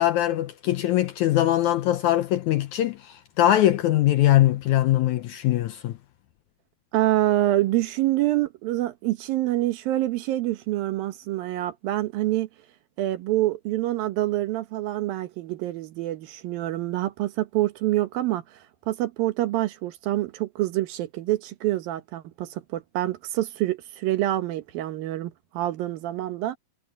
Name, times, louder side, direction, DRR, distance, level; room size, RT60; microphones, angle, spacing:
voice 1, 0.0-6.0, left 13 dB, 75° left, 1.8 m, -22 dB
voice 2, 6.9-12.5 13.0-18.4 18.9-26.6, right 15 dB, 80° right, 3.0 m, -26 dB
omnidirectional pair, 4.1 m